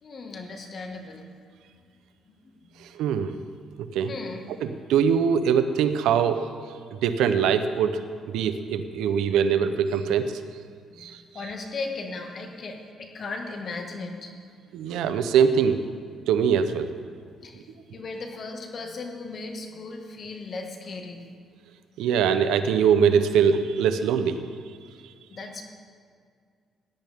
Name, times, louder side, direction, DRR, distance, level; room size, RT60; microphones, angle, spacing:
voice 1, 0.0-1.2 2.3-2.9 4.1-4.4 10.9-14.3 17.4-21.2 25.3-25.6, left 3 dB, 50° left, 3 dB, 1.7 m, -37 dB
voice 2, 2.8-3.3 3.8-4.1 4.6-6.5 6.9-8.1 8.3-10.3 11.0-11.2 14.7-15.8 16.3-16.9 22.0-24.4, right 7 dB, 90° right, 10 dB, 0.7 m, -22 dB
17.0 x 10.5 x 3.5 m, 2.1 s
cardioid pair, 90°, 0 cm